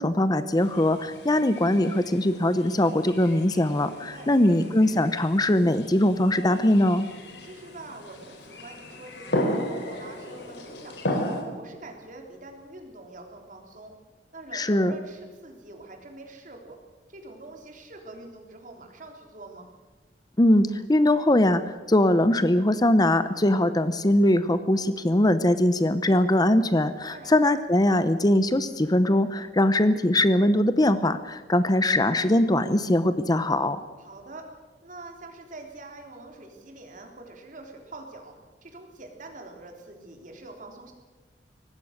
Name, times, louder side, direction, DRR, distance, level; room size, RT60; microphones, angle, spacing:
voice 1, 0.0-7.1 14.5-14.9 20.4-33.8, left 1 dB, 25° left, 12 dB, 0.8 m, -21 dB
sound 1, 0.6-11.4, left 1 dB, 85° left, 4.3 m, -35 dB
voice 2, 3.9-4.4 7.4-11.2 11.5-13.9 14.3-16.8 17.1-19.7 27.1-27.4 34.0-34.5 34.8-38.4 38.6-40.9, right 2 dB, 50° right, 3 dB, 3.6 m, -45 dB
24.0 x 19.0 x 6.6 m, 1.3 s
head